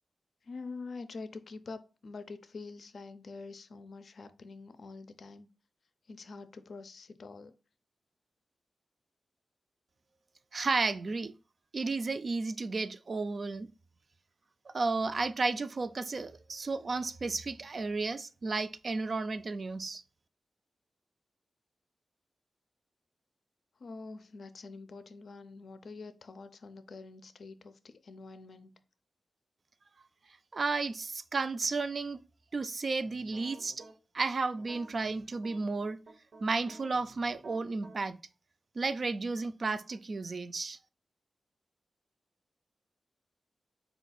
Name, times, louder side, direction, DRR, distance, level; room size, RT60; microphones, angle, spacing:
voice 1, 0.4-5.5 6.1-7.5 23.8-28.8, left 4 dB, 70° left, 0.4 m, -46 dB
voice 2, 10.5-11.3 11.7-13.7 14.7-20.0 30.5-32.2 32.5-33.9 34.1-36.0 36.4-38.2 38.8-40.8, right 3 dB, 55° right, 0.3 m, -33 dB
sound 1, 33.0-33.9 34.6-38.0, right 3 dB, 80° right, 0.7 m, -53 dB
4.2 x 2.3 x 4.0 m
cardioid pair, 70°, 0 cm